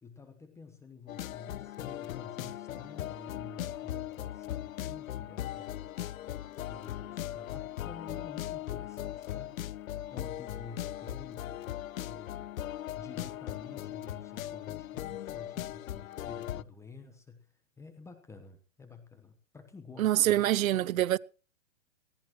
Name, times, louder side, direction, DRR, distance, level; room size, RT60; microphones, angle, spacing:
voice 1, 0.0-5.9 6.5-9.6 9.9-11.6 12.0-12.5 12.9-17.5 17.8-20.5 20.9-21.0, left 4 dB, 5° left, 1.1 m, -50 dB
sound 1, 1.1-16.6, left 13 dB, 80° left, 0.6 m, -39 dB
voice 2, 20.0-21.2, right 13 dB, 80° right, 0.6 m, -25 dB
20.0 x 14.5 x 3.1 m
hypercardioid pair, 145°, 40 cm